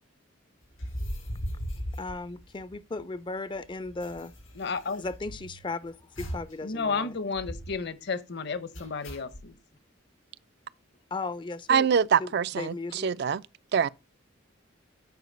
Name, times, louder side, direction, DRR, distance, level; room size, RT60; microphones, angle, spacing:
sound 1, 0.7-3.0 3.3-3.4 3.5-5.7 6.2-6.6 6.9-7.0 7.3-7.8 8.7-9.5, equal, 90° left, 6.0 m, -38 dB
voice 1, 2.0-4.3 5.0-7.2 11.1-11.9 12.2-13.1, left 3 dB, 25° left, 0.4 m, -36 dB
voice 2, 4.6-5.0 6.6-9.5, left 4 dB, 55° left, 0.8 m, -32 dB
voice 3, 11.7-12.7 13.0-13.4 13.7-13.9, right 7 dB, 55° right, 0.4 m, -24 dB
9.4 x 5.0 x 5.1 m
head